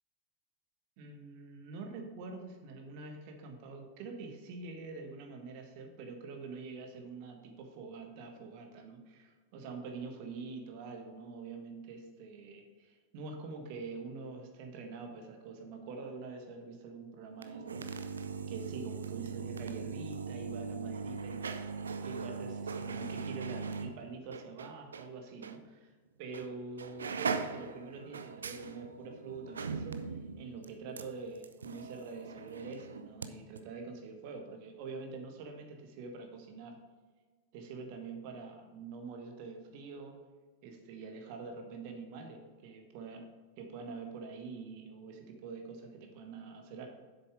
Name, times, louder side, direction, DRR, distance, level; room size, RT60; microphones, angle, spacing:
voice 1, 1.0-17.9 18.5-21.6 22.0-25.9 26.2-36.8 37.5-40.2 40.6-43.3 43.6-46.9, right 4 dB, 45° right, 4 dB, 1.4 m, -45 dB
sound 1, 17.3-25.1 25.4-25.6 26.3-26.5 26.8-33.3 33.5-33.6, right 5 dB, 70° right, 0.5 m, -40 dB
7.7 x 6.9 x 5.0 m, 1.4 s
figure-of-eight pair, 90°, 0 cm